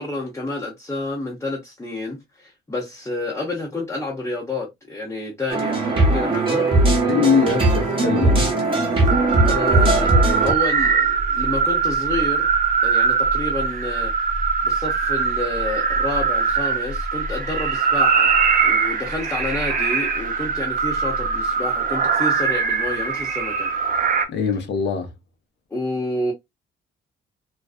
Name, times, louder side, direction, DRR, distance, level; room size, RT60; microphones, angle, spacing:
voice 1, 0.0-6.7 9.4-10.1 10.4-12.5 12.8-14.1 14.6-18.3 18.6-23.7 25.7-26.3, left 2 dB, 15° left, 0.7 m, -29 dB
sound 1, 5.5-10.5, right 2 dB, 25° right, 1.0 m, -19 dB
voice 2, 7.1-8.5 24.3-25.1, left 6 dB, 60° left, 0.7 m, -22 dB
sound 2, 9.1-24.3, right 5 dB, 45° right, 0.6 m, -21 dB
2.5 x 2.2 x 2.3 m
cardioid pair, 90°, 20 cm